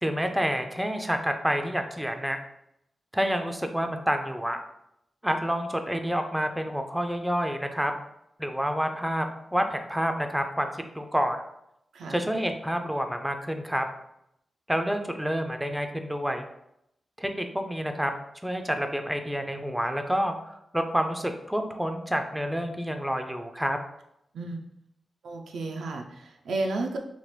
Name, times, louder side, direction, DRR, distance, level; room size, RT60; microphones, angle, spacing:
voice 1, 0.0-2.4 3.1-4.6 5.2-7.9 8.4-9.3 9.5-11.4 12.1-13.9 14.7-16.4 17.2-18.1 18.4-23.8, equal, 5° right, 6 dB, 0.3 m, -28 dB
voice 2, 24.3-24.6 25.2-27.0, right 2 dB, 90° right, 2 dB, 0.4 m, -32 dB
3.0 x 2.1 x 3.2 m, 0.78 s
cardioid pair, 70°, 0 cm